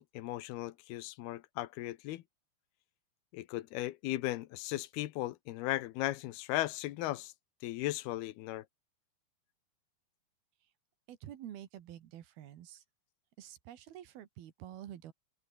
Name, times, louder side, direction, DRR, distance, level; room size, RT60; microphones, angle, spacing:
voice 1, 0.0-2.2 3.3-7.3 7.6-8.7, left 16 dB, 85° left, 3.0 m, -37 dB
voice 2, 11.1-12.8 13.4-15.1, right 11 dB, 75° right, 3.6 m, -48 dB
omnidirectional pair, 4.4 m